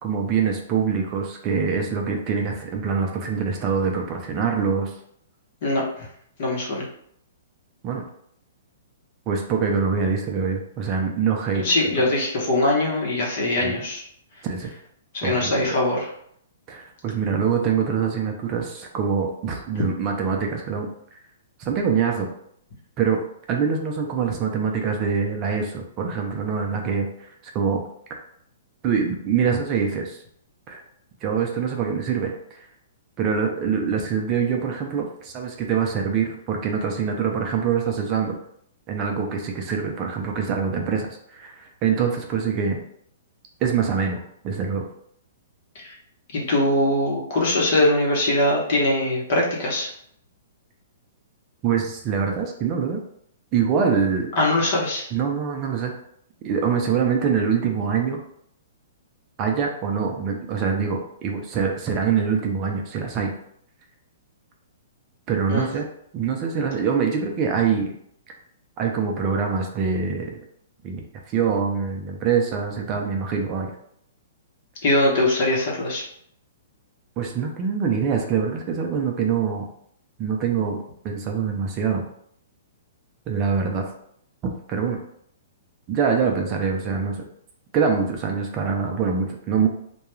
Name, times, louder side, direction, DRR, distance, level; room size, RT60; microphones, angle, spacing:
voice 1, 0.0-4.9 7.8-8.0 9.3-11.6 13.6-13.7 14.4-14.7 15.2-15.7 16.7-20.9 21.6-22.3 23.0-23.2 23.5-27.3 27.5-27.8 28.8-30.2 30.7-30.8 31.2-32.6 33.2-38.3 38.9-42.8 43.6-44.2 44.4-44.8 51.6-53.0 53.5-54.3 55.1-55.9 56.4-58.2 59.4-63.3 65.3-65.8 66.1-67.9 68.8-70.4 70.8-71.0 71.3-73.7 77.2-79.7 80.2-80.8 81.0-82.0 83.3-83.8 84.4-85.0 85.9-87.2 87.7-89.7, right 6 dB, 35° right, 2 dB, 0.5 m, -24 dB
voice 2, 6.4-6.9 11.5-14.0 15.1-16.1 45.7-46.0 46.3-49.9 54.4-55.1 65.5-65.7 74.8-76.0, left 1 dB, 55° left, -2 dB, 0.9 m, -22 dB
2.3 x 2.2 x 3.0 m, 0.69 s
hypercardioid pair, 135°, 0 cm